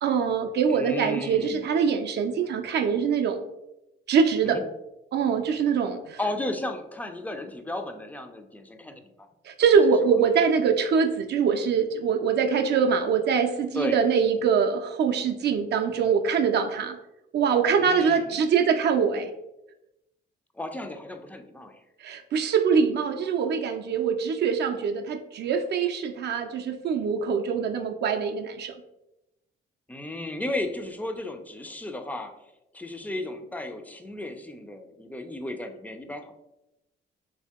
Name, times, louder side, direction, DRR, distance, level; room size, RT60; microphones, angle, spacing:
voice 1, 0.0-3.4 4.1-4.6 5.1-6.2 9.4-17.0 17.3-19.3 22.0-28.7, right 6 dB, 60° right, 5 dB, 0.4 m, -23 dB
voice 2, 0.7-1.6 4.4-4.6 6.2-9.1 10.0-10.2 13.7-14.0 17.8-18.4 20.5-21.8 29.9-32.3 32.7-36.3, left 1 dB, 10° left, 6 dB, 0.4 m, -34 dB
2.7 x 2.7 x 3.5 m, 0.91 s
cardioid pair, 90°, 20 cm